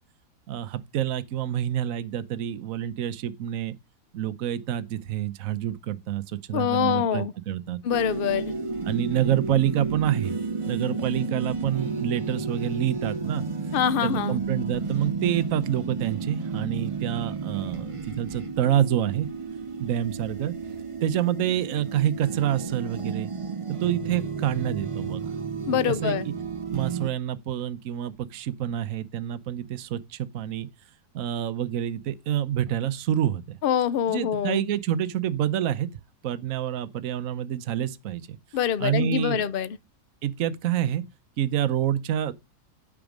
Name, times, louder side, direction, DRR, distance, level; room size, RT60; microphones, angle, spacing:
voice 1, 0.5-3.8 4.1-7.8 8.9-10.3 10.7-13.4 14.0-19.3 19.8-20.5 21.0-23.3 23.7-25.2 25.7-26.3 26.7-30.7 31.1-33.6 34.1-35.9 36.2-38.4 38.8-39.5 40.2-41.0 41.4-42.3, right 11 dB, 65° right, 1.1 m, -27 dB
voice 2, 6.5-7.3 7.8-8.5 13.7-14.4 25.7-26.3 33.6-34.6 38.5-39.8, left 9 dB, 65° left, 0.5 m, -25 dB
sound 1, 7.9-27.1, right 4 dB, 25° right, 0.9 m, -32 dB
8.8 x 5.9 x 5.0 m
omnidirectional pair, 1.7 m